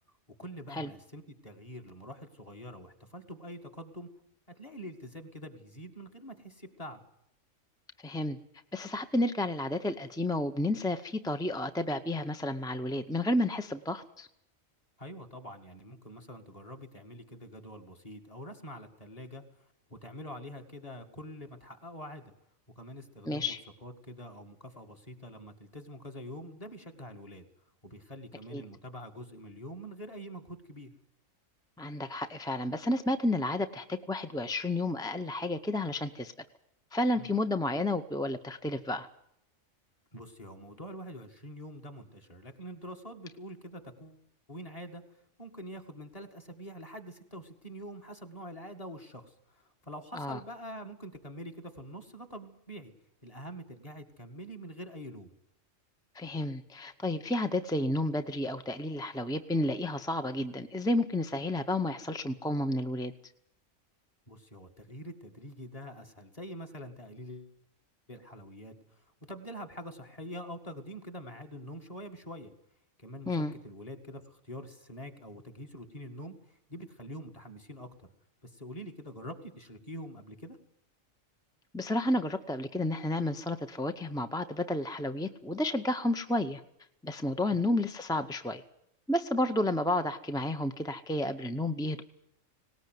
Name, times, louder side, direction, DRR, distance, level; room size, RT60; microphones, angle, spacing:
voice 1, 0.4-4.1 4.6-7.0 15.0-19.4 19.9-22.3 22.8-23.5 23.8-27.5 27.8-30.9 37.2-37.3 40.1-44.2 44.5-45.0 45.4-52.9 53.2-55.3 64.3-67.5 68.1-72.5 73.0-78.1 78.4-80.6 87.4-87.6, equal, 30° left, 3 dB, 2.1 m, -45 dB
voice 2, 8.0-8.4 8.7-14.3 23.3-23.6 28.5-28.6 31.8-36.3 36.9-39.1 50.1-50.4 56.1-63.1 73.3-73.5 81.7-86.6 87.0-88.6 89.1-92.0, left 1 dB, 5° left, 8 dB, 0.4 m, -31 dB
19.0 x 18.5 x 9.4 m, 0.76 s
omnidirectional pair, 1.4 m